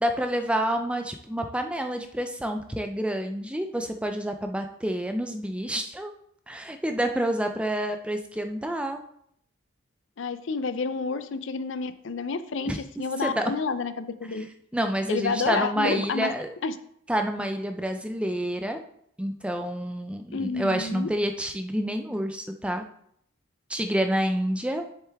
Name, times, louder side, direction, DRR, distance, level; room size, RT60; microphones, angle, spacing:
voice 1, 0.0-6.1 6.5-9.0 12.7-12.8 13.2-13.4 14.7-16.5 17.1-18.8 19.2-22.8 23.7-24.8, right 1 dB, 5° right, 5 dB, 0.5 m, -28 dB
voice 2, 10.2-14.5 15.1-16.3 16.6-16.7 20.3-21.1, left 4 dB, 60° left, 12 dB, 0.5 m, -29 dB
7.6 x 6.7 x 3.5 m, 0.69 s
head